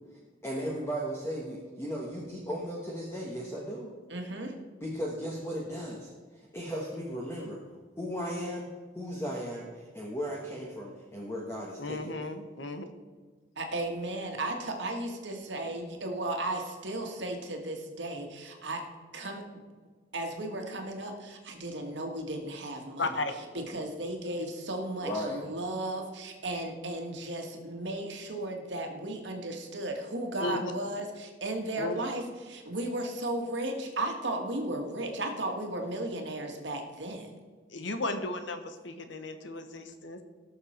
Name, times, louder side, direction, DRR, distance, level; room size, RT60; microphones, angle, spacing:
voice 1, 0.4-3.9 4.8-7.6 8.0-8.7 8.9-12.3 25.0-25.4, equal, 15° left, -3 dB, 1.3 m, -36 dB
voice 2, 4.1-4.5 13.6-18.8 19.1-19.4 20.1-23.2 23.5-37.3, right 1 dB, 75° right, 3 dB, 1.8 m, -35 dB
voice 3, 11.8-12.9 23.0-23.3 30.4-30.7 31.8-31.9 37.7-40.2, left 2 dB, 85° left, 8 dB, 1.2 m, -34 dB
18.0 x 6.7 x 4.4 m, 1.4 s
head